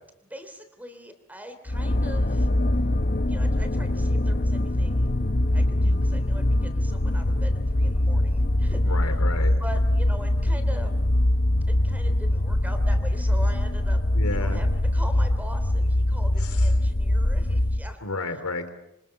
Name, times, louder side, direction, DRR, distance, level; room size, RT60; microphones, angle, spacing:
voice 1, 0.3-2.5 3.2-5.1 5.5-9.2 9.6-10.9 11.7-14.0 14.3-18.0 18.3-18.4, equal, 5° right, 9 dB, 3.3 m, -42 dB
sound 1, 1.7-17.9, left 1 dB, 40° left, 0.9 m, -23 dB
voice 2, 8.8-9.5 14.1-14.6 16.4-16.5 18.0-18.7, left 2 dB, 90° left, 9 dB, 3.4 m, -31 dB
26.5 x 26.5 x 7.0 m, 0.84 s
head